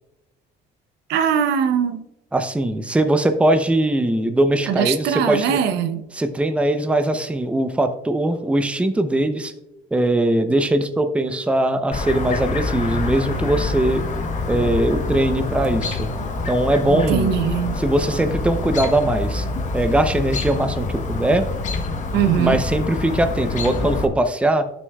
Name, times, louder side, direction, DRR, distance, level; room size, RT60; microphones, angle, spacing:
voice 1, 1.1-2.0 4.7-6.0 16.9-17.8 22.1-22.6, right 8 dB, 85° right, 0.7 m, -21 dB
voice 2, 2.3-5.6 6.1-9.5 9.9-14.1 14.5-16.1 16.5-17.3 17.8-19.5 19.7-21.5 22.3-24.7, right 1 dB, 5° right, 0.6 m, -20 dB
Chirp tweet, 11.9-24.1, left 3 dB, 45° left, 1.0 m, -26 dB
12.5 x 6.2 x 2.3 m
cardioid pair, 110°, 17 cm